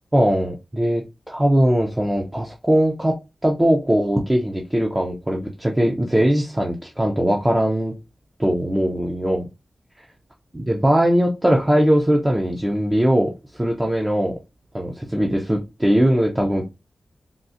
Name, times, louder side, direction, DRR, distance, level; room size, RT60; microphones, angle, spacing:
voice 1, 0.1-3.1 3.4-7.9 8.4-9.4 10.5-14.4 14.7-16.6, equal, 10° right, -1 dB, 0.4 m, -20 dB
3.6 x 2.4 x 2.5 m, 0.25 s
wide cardioid pair, 175°, 0 cm